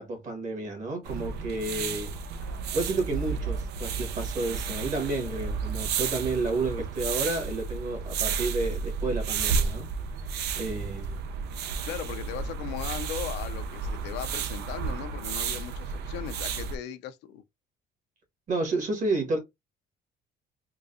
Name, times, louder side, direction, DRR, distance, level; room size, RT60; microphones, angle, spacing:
voice 1, 0.0-2.1 2.7-9.9 10.2-10.3 10.5-11.2 18.5-19.4, right 2 dB, 50° right, 1.7 m, -31 dB
sound 1, 1.0-16.8, right 5 dB, 80° right, 0.6 m, -32 dB
voice 2, 11.8-17.4, left 10 dB, 90° left, 0.6 m, -38 dB
3.8 x 2.3 x 2.6 m
cardioid pair, 110°, 17 cm